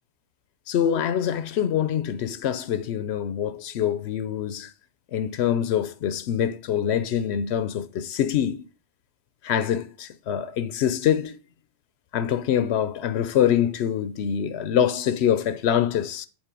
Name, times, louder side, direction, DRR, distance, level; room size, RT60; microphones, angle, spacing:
voice 1, 0.7-4.7 5.1-8.6 9.4-11.4 12.1-16.3, left 9 dB, 70° left, 0.8 m, -25 dB
7.2 x 3.9 x 5.2 m
omnidirectional pair, 1.2 m